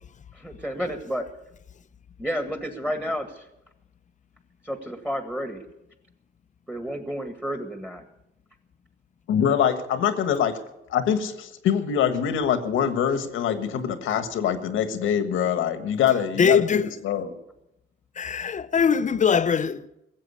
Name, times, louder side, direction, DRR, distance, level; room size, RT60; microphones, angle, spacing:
voice 1, 0.3-1.3 2.2-3.5 4.6-5.6 6.7-8.0, equal, 5° right, 1.8 m, -31 dB
voice 2, 9.3-10.5 10.9-16.6 17.0-17.4, left 8 dB, 85° left, 1.5 m, -24 dB
voice 3, 16.4-16.9 18.2-20.0, left 6 dB, 40° left, 0.7 m, -21 dB
16.0 x 7.6 x 9.8 m
cardioid pair, 90°, 20 cm